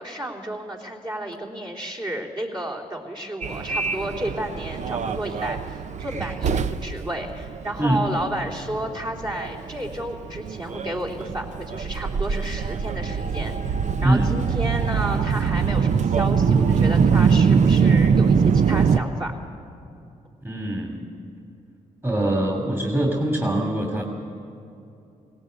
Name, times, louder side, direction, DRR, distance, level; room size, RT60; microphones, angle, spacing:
voice 1, 0.0-19.3, right 1 dB, 30° right, -2 dB, 3.4 m, -32 dB
Subway metro underground, 3.4-19.0, right 6 dB, 55° right, 0.7 m, -23 dB
voice 2, 20.4-21.0 22.0-24.0, right 1 dB, 15° right, 1 dB, 2.8 m, -23 dB
18.0 x 18.0 x 8.1 m, 2.7 s
cardioid pair, 80°, 15 cm